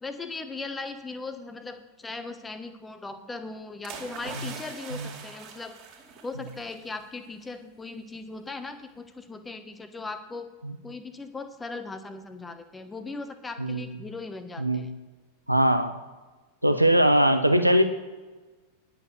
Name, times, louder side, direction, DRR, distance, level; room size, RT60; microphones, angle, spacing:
voice 1, 0.0-5.8 6.2-10.5 10.8-14.9, left 3 dB, 10° left, 8 dB, 1.2 m, -38 dB
sound 1, 3.8-6.9 7.2-7.4, right 6 dB, 40° right, 2.6 m, -43 dB
voice 2, 15.5-15.9 16.6-17.8, right 1 dB, 85° right, 9 dB, 1.0 m, -21 dB
10.5 x 6.9 x 6.9 m, 1.3 s
figure-of-eight pair, 90°, 0 cm